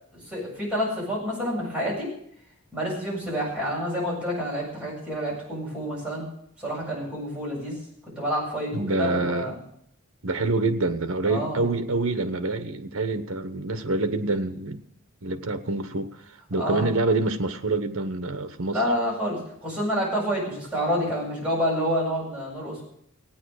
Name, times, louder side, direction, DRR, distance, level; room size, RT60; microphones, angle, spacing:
voice 1, 0.1-2.1 2.7-6.3 6.6-7.8 8.2-9.6 11.3-11.6 16.6-16.9 18.7-22.8, equal, 5° right, 7.6 m, -28 dB
voice 2, 8.7-9.5 10.2-14.8 15.2-16.2 16.5-18.8, right 3 dB, 65° right, 1.2 m, -26 dB
16.5 x 9.6 x 6.5 m
head